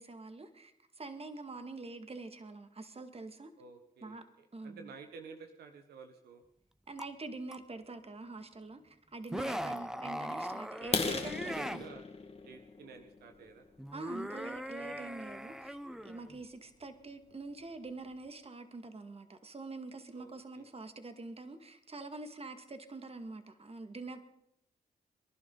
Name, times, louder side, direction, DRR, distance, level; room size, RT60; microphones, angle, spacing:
voice 1, 0.0-3.5 4.0-4.2 4.5-4.9 6.9-11.8 13.9-15.8 16.0-24.2, right 3 dB, 40° right, 8 dB, 2.0 m, -45 dB
voice 2, 3.6-6.4 10.9-12.0 12.4-13.7 16.1-16.3 20.1-20.7, right 5 dB, 90° right, 6 dB, 1.2 m, -52 dB
sound 1, 7.0-7.1 7.5-7.6 9.2-11.8 13.8-16.4, equal, 5° right, 1.0 m, -40 dB
sound 2, 10.8-14.6 15.1-15.3 15.8-15.9 16.3-16.4 16.8-16.9 17.3-17.4 17.6-18.1, left 4 dB, 40° left, 1.9 m, -38 dB
25.5 x 11.5 x 4.0 m, 0.74 s
supercardioid pair, 50°, 16 cm